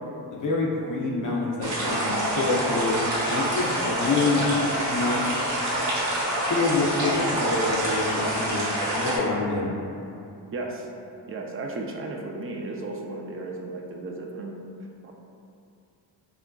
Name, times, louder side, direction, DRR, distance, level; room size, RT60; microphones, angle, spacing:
voice 1, 0.3-4.5 4.9-5.5 6.5-8.7 9.0-9.8, left 3 dB, 45° left, -3 dB, 0.6 m, -26 dB
sound 1, 1.6-9.2, right 1 dB, 90° right, 0.7 m, -26 dB
voice 2, 10.5-10.9 11.3-14.5 15.0-15.1, right 2 dB, 30° right, 0 dB, 0.4 m, -34 dB
3.5 x 2.4 x 2.2 m, 2.6 s
cardioid pair, 40°, 44 cm